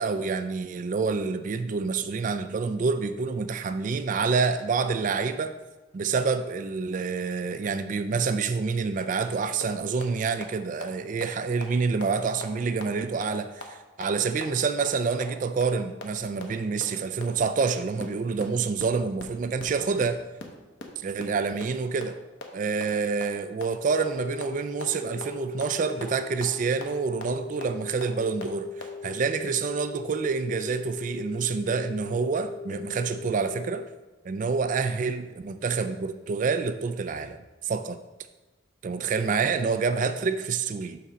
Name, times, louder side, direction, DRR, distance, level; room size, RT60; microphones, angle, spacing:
voice 1, 0.0-5.5 5.9-20.2 21.0-22.2 22.5-33.8 34.3-37.4 37.6-38.0 38.8-41.0, right 5 dB, 40° right, 10 dB, 0.3 m, -27 dB
sound 1, 9.2-9.3 9.6-9.7 10.0-10.1 10.4-10.5 10.8-10.9 11.2-11.3 11.6-11.7 12.0-12.1 12.4-12.5 12.8-12.9 13.2-13.3 13.6-13.7 14.0-14.1 14.4-14.5 14.8-14.9 15.2-15.3 15.6-15.7 16.0-16.1 16.4-16.5 16.8-16.9 17.2-17.3 17.6-17.7 18.0-18.1 18.4-18.5 18.8-18.9 19.2-19.3 19.6-19.7 20.0-20.1 20.4-20.5 20.8-20.9 21.2-21.3 21.6-21.7 22.0-22.1 22.4-22.5 22.8-22.9 23.2-23.3 23.6-23.7 24.0-24.1 24.4-24.5 24.8-24.9 25.2-25.3 25.6-25.7 26.0-26.1 26.4-26.5 26.8-26.9 27.2-27.3 27.6-27.7 28.0-28.1 28.4-28.5 28.8-28.9, left 3 dB, 65° left, 0.9 m, -36 dB
sound 2, 23.9-33.9, left 4 dB, 40° left, 0.3 m, -40 dB
5.7 x 4.2 x 6.1 m, 1.2 s
head